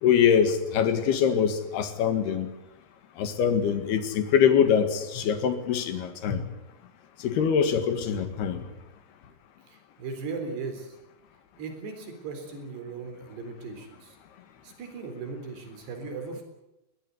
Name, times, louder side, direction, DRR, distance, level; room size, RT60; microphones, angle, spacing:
voice 1, 0.0-2.5 3.2-6.4 7.2-8.6, left 7 dB, 75° left, 9 dB, 3.8 m, -23 dB
voice 2, 9.7-10.9 11.6-14.2 14.6-16.4, right 4 dB, 85° right, 5 dB, 6.1 m, -37 dB
22.0 x 19.5 x 8.4 m, 0.94 s
omnidirectional pair, 4.7 m